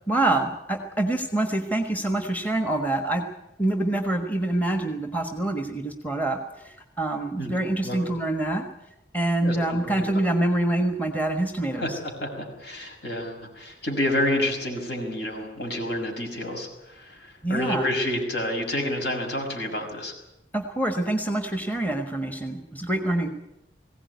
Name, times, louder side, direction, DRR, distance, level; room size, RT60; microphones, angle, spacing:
voice 1, 0.1-3.2 3.6-8.6 9.1-12.0 17.4-17.8 20.5-23.3, right 1 dB, 10° left, 5 dB, 1.4 m, -26 dB
voice 2, 9.4-10.2 11.8-20.1, left 1 dB, 65° left, 2 dB, 5.9 m, -29 dB
20.5 x 16.5 x 9.5 m, 0.90 s
head